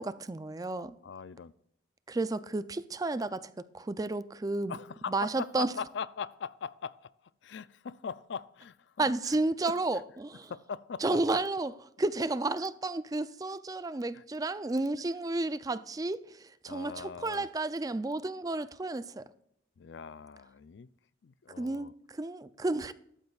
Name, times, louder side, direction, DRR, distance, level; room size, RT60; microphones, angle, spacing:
voice 1, 0.0-0.9 2.1-4.8 5.1-5.7 9.0-10.5 11.0-11.7 12.0-19.2 21.6-22.9, right 2 dB, 20° right, 0.4 m, -32 dB
voice 2, 1.0-1.5 4.7-9.4 9.7-9.8 10.5-11.2 14.1-14.2 16.7-17.5 19.8-20.9 21.2-21.9, left 6 dB, 65° left, 0.4 m, -41 dB
13.5 x 12.0 x 2.4 m
head